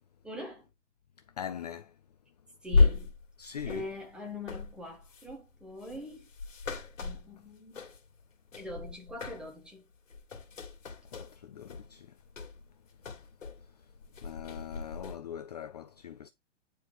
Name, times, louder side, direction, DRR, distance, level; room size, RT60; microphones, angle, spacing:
voice 1, 0.2-0.7 2.6-3.1 3.6-6.3 7.0-7.9 8.6-9.8, left 1 dB, ahead, 1.4 m, -43 dB
voice 2, 1.4-1.9 3.4-3.9 11.1-12.1 14.2-16.3, left 9 dB, 35° left, 0.4 m, -42 dB
sound 1, 2.7-8.2 8.5-9.7 10.0-13.7 13.9-15.2, left 3 dB, 85° left, 2.6 m, -33 dB
9.7 x 4.5 x 3.8 m
hypercardioid pair, 155°, 38 cm